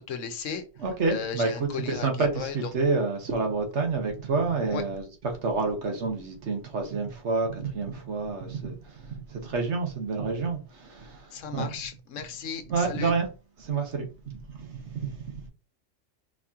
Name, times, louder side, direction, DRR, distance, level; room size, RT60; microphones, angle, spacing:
voice 1, 0.0-0.6 1.1-2.6 4.7-4.8 11.3-13.1, left 7 dB, 80° left, 1.1 m, -35 dB
voice 2, 0.8-11.8 12.7-13.3 13.6-15.5, right 4 dB, 65° right, 1.3 m, -29 dB
4.8 x 2.9 x 3.6 m
omnidirectional pair, 1.3 m